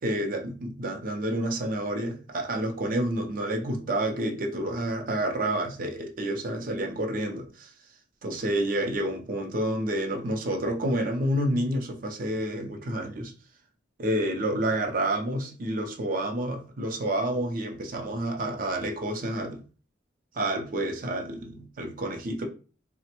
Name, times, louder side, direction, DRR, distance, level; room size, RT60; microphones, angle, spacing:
voice 1, 0.0-7.7 8.2-13.3 14.0-19.6 20.3-22.5, right 1 dB, 45° right, 3 dB, 0.5 m, -29 dB
3.2 x 2.1 x 2.8 m, 0.37 s
head